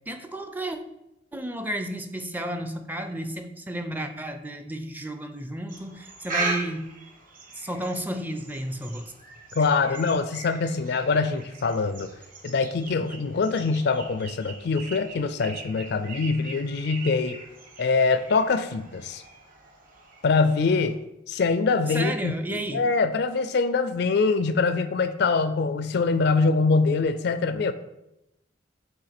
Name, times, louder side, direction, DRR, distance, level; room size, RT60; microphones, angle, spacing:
voice 1, 0.1-0.8 1.3-7.0 7.5-9.1 21.9-22.8, right 1 dB, 10° right, 7 dB, 0.4 m, -32 dB
sound 1, 5.7-20.9, right 3 dB, 45° right, 1.4 m, -39 dB
voice 2, 9.6-12.1 12.4-17.4 17.8-19.2 20.2-21.0 21.3-27.7, left 4 dB, 60° left, 12 dB, 0.4 m, -24 dB
7.0 x 3.2 x 5.8 m, 0.87 s
head